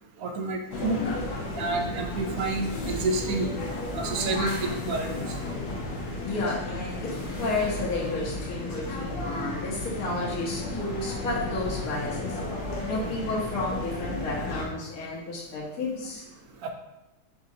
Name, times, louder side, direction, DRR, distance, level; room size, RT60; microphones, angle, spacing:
voice 1, 0.2-1.0 1.6-3.5 3.9-5.3 16.6-16.7, right 3 dB, 70° right, 4 dB, 1.0 m, -29 dB
sound 1, 0.7-14.7, left 2 dB, 85° left, 1.4 m, -33 dB
voice 2, 6.2-12.4 12.8-16.2, left 2 dB, 65° left, -5 dB, 1.5 m, -32 dB
4.2 x 3.7 x 2.7 m, 1.0 s
omnidirectional pair, 1.7 m